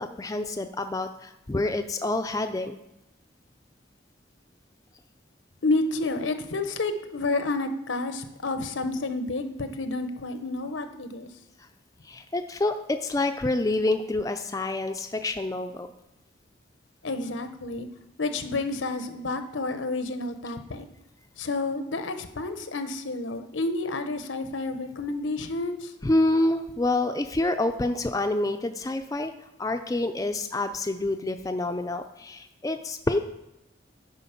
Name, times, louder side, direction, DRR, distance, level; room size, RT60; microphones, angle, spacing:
voice 1, 0.0-2.8 12.1-15.9 26.0-29.3 29.6-33.2, left 2 dB, 20° left, 6 dB, 0.4 m, -27 dB
voice 2, 5.6-11.3 17.0-17.9 18.2-20.9 21.4-25.9, left 2 dB, 90° left, 9 dB, 0.9 m, -30 dB
9.2 x 5.2 x 5.7 m, 0.89 s
head